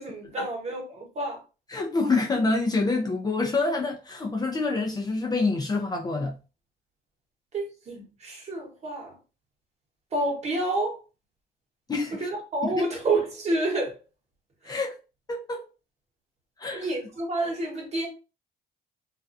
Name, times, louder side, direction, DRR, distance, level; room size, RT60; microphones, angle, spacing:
voice 1, 0.0-1.4 7.5-9.1 10.1-11.0 12.1-13.9 14.6-14.8 16.7-18.1, right 2 dB, 40° right, 1.0 m, -29 dB
voice 2, 1.7-6.3 11.9-12.3 12.6-13.0 14.7-14.9 15.3-15.6 16.6-16.9, left 3 dB, 25° left, 0.4 m, -27 dB
2.4 x 2.2 x 2.5 m
cardioid pair, 110°, 17 cm